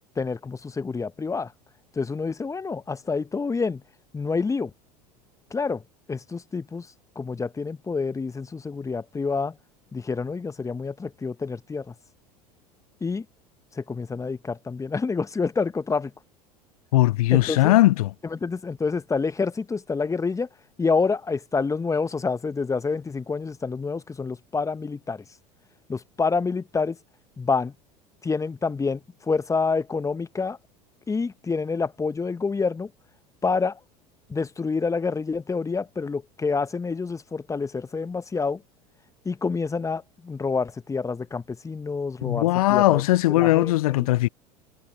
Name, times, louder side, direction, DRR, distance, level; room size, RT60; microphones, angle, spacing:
voice 1, 0.2-1.5 1.9-3.8 4.1-4.7 5.5-5.8 6.1-6.9 7.1-9.6 9.9-11.9 13.0-13.2 13.8-16.1 17.3-17.7 18.2-20.5 20.8-25.2 25.9-27.0 27.4-27.7 28.2-29.0 29.3-30.6 31.1-32.9 33.4-33.8 34.3-38.6 39.2-43.0 43.3-43.7, left 4 dB, 15° left, 1.4 m, -27 dB
voice 2, 16.9-18.1 42.2-44.3, left 17 dB, 60° left, 1.1 m, -19 dB
figure-of-eight pair, 75°, 20 cm